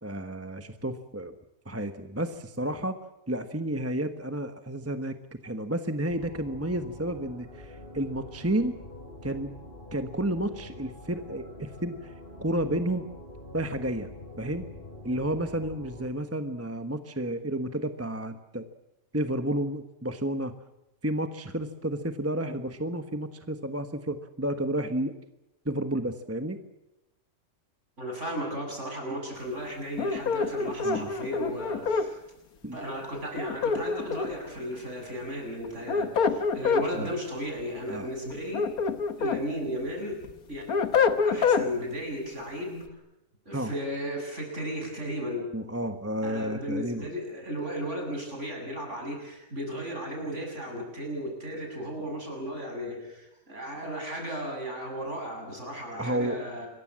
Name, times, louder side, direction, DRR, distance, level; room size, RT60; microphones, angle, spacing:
voice 1, 0.0-1.3 1.6-3.0 3.3-8.7 9.2-9.5 9.9-12.1 12.4-13.1 13.5-14.1 14.4-14.6 15.0-18.6 19.1-20.6 21.0-25.1 25.6-26.6 30.8-31.1 32.6-32.8 36.9-37.1 37.9-38.1 43.5-43.7 45.5-47.1 56.0-56.4, right 1 dB, 10° right, 8 dB, 1.2 m, -31 dB
sound 1, 6.1-16.1, left 1 dB, 35° left, 4.7 m, -45 dB
voice 2, 28.0-32.2 32.7-38.6 39.2-40.2 40.5-40.6 41.2-42.8 43.4-45.5 46.2-56.7, equal, 55° right, 1 dB, 8.0 m, -35 dB
sound 2, 30.0-32.1 33.4-34.5 35.6-36.9 38.3-39.4 39.9-41.7, left 5 dB, 85° left, 1.9 m, -26 dB
27.0 x 22.5 x 7.5 m, 0.93 s
omnidirectional pair, 1.5 m